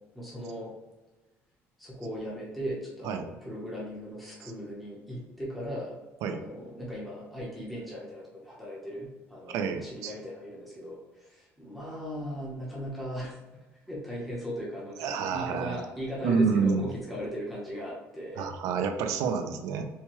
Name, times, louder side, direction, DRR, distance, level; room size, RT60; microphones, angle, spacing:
voice 1, 0.1-0.7 1.8-6.0 6.3-13.4 13.9-18.5, equal, ahead, -7 dB, 0.9 m, -38 dB
voice 2, 9.5-10.1 15.0-15.8 16.2-16.8 18.4-19.9, right 5 dB, 85° right, 6 dB, 0.5 m, -28 dB
4.3 x 2.3 x 3.0 m, 1.2 s
cardioid pair, 165°, 5 cm